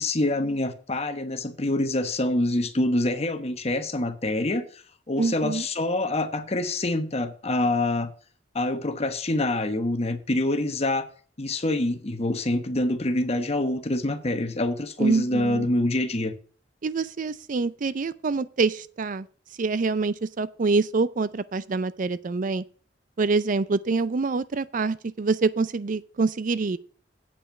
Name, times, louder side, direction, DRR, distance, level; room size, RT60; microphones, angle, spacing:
voice 1, 0.0-4.8 5.1-8.1 8.5-11.1 11.4-16.3, left 1 dB, 35° left, 1.0 m, -26 dB
voice 2, 5.2-5.7 15.0-15.7 16.8-19.3 19.6-22.6 23.2-26.8, right 4 dB, 45° right, 0.4 m, -25 dB
8.6 x 5.5 x 7.1 m
head